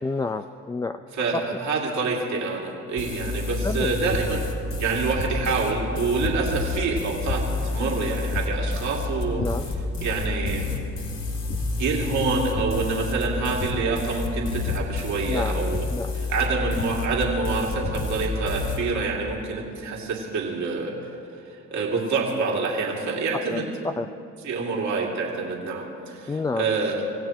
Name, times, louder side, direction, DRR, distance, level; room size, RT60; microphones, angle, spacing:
voice 1, 0.0-1.0 1.5-1.6 3.6-3.9 9.4-9.7 15.2-15.6 15.9-16.1 23.5-24.1 26.3-26.7, left 3 dB, 10° left, 8 dB, 0.4 m, -29 dB
voice 2, 1.1-4.4 4.8-9.4 10.0-10.7 11.8-15.9 16.1-21.1 21.5-23.7 24.4-27.0, right 4 dB, 70° right, -2 dB, 2.6 m, -27 dB
sound 1, 3.0-18.8, left 3 dB, 60° left, 2.9 m, -30 dB
sound 2, 4.1-4.2 5.1-5.3 6.2-6.3 7.3-7.4 8.3-8.4 9.4-9.5 9.9-10.1 10.4-10.5 11.5-11.6 12.5-12.7 13.6-13.7 14.6-14.7 15.7-15.8 16.8-16.9 17.6-17.9, left 5 dB, 85° left, 1.8 m, -30 dB
26.5 x 16.5 x 3.1 m, 2.6 s
cardioid pair, 90°, 30 cm